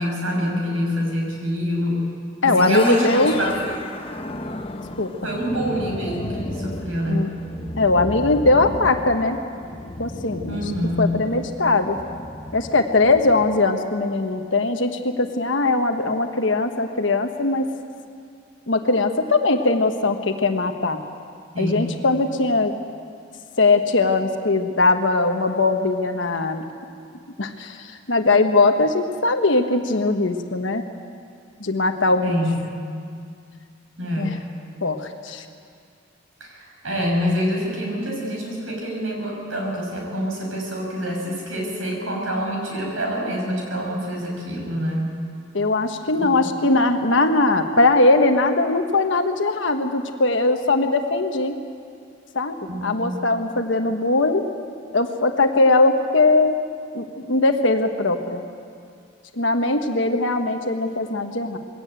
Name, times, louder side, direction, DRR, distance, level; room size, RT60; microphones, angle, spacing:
voice 1, 0.0-2.0 2.4-3.5 5.2-7.3 10.5-11.1 21.5-22.0 32.2-32.7 34.0-34.4 36.4-45.2 46.2-46.5 52.7-53.1, equal, 75° right, -1 dB, 6.5 m, -26 dB
voice 2, 2.4-3.3 5.0-5.1 7.1-7.3 7.8-9.4 10.0-10.7 11.0-12.0 12.5-17.7 18.7-21.0 21.6-22.7 23.6-26.6 27.4-30.8 31.6-32.4 34.2-34.4 34.8-35.4 45.5-51.5 52.3-52.6 52.8-54.5 54.9-56.6 56.9-58.4 59.3-61.6, left 2 dB, 65° left, 6 dB, 1.3 m, -20 dB
sound 1, 2.6-13.7, left 1 dB, 25° left, 0.9 m, -34 dB
21.5 x 17.0 x 9.0 m, 2.3 s
head